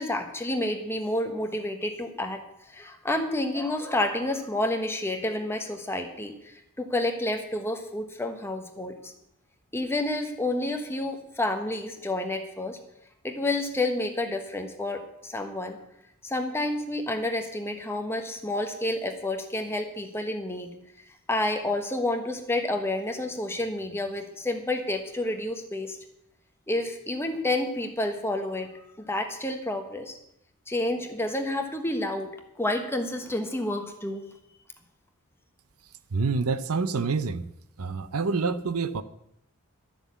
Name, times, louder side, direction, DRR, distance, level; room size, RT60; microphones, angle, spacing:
voice 1, 0.0-9.1 9.7-12.8 13.2-15.8 16.2-20.7 21.0-26.0 26.7-28.7 29.0-30.2 30.7-34.3, left 1 dB, 10° left, 5 dB, 1.3 m, -29 dB
voice 2, 36.1-37.5 37.8-39.0, right 4 dB, 75° right, 13 dB, 0.7 m, -27 dB
12.5 x 7.0 x 8.3 m, 0.78 s
head